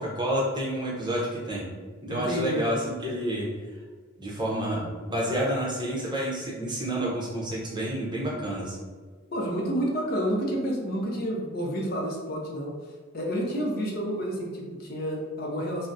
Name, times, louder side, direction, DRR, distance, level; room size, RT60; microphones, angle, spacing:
voice 1, 0.0-1.7 2.0-3.5 4.2-8.8, right 1 dB, 20° right, -5 dB, 0.6 m, -29 dB
voice 2, 2.1-2.8 9.3-12.7 13.1-15.9, equal, 50° left, -2 dB, 0.6 m, -29 dB
3.8 x 2.1 x 2.5 m, 1.5 s
head